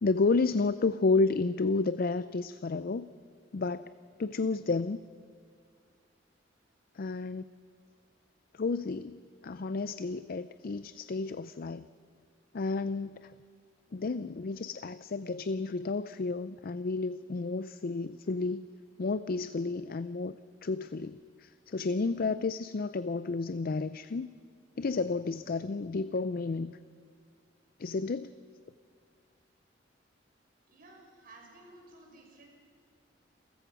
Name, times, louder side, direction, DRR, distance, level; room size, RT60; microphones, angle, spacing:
voice 1, 0.0-3.1 3.5-3.8 4.2-5.0 6.9-7.4 8.5-11.9 12.5-13.3 13.9-18.7 19.0-20.4 20.6-24.3 24.8-26.8 27.8-28.3, left 3 dB, 50° left, 14 dB, 0.5 m, -31 dB
voice 2, 30.7-32.5, right 2 dB, 50° right, 0 dB, 5.7 m, -54 dB
29.0 x 15.0 x 6.0 m, 2.2 s
head